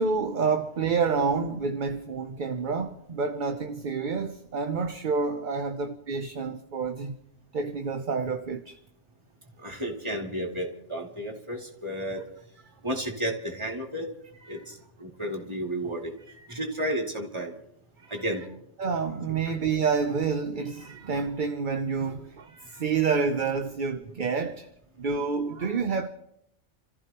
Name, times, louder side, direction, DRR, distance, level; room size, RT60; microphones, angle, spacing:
voice 1, 0.0-7.2 7.5-8.8 12.1-12.2 14.4-14.6 16.4-16.5 18.0-18.2 18.8-24.7 25.0-26.1, right 5 dB, 45° right, 0.8 m, -28 dB
voice 2, 9.6-12.2 12.8-14.1 14.5-16.1 16.5-17.5 18.1-18.4 19.3-19.6, equal, 25° right, 2.7 m, -32 dB
29.5 x 14.5 x 3.0 m
omnidirectional pair, 1.3 m